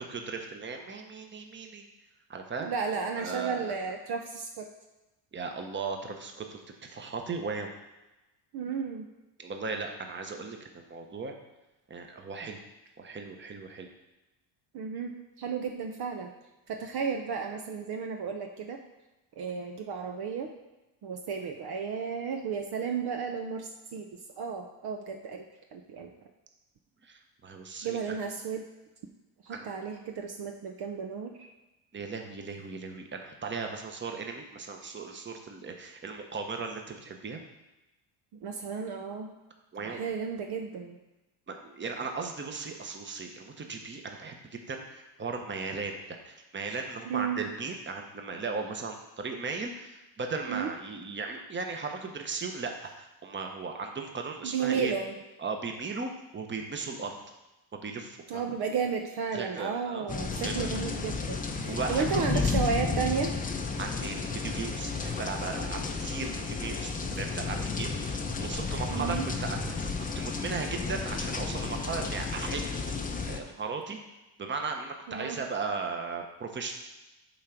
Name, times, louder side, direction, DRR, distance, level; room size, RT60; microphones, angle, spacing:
voice 1, 0.0-1.9 2.3-2.7 3.2-3.7 5.3-7.7 9.4-11.3 11.9-12.6 13.0-13.9 27.0-28.2 29.5-29.7 31.9-37.4 39.7-40.0 41.5-54.9 55.4-57.2 57.7-58.4 59.3-60.1 60.4-60.8 61.7-62.6 63.8-67.9 68.4-69.9 70.1-72.7 73.3-74.0 74.4-76.7, right 4 dB, 25° right, 3 dB, 1.1 m, -37 dB
voice 2, 2.6-4.7 8.5-9.1 14.7-16.3 16.7-18.8 19.4-20.5 21.0-24.1 24.4-25.4 25.7-26.1 27.8-28.6 29.4-31.5 38.3-39.3 39.8-41.0 47.1-47.4 50.5-50.7 54.4-55.1 58.3-63.3 68.9-69.3 75.1-75.4, right 6 dB, 50° right, 3 dB, 0.9 m, -33 dB
sound 1, 60.1-73.4, left 4 dB, 15° left, 0.7 m, -32 dB
8.5 x 3.8 x 5.9 m, 1.0 s
supercardioid pair, 100°, 49 cm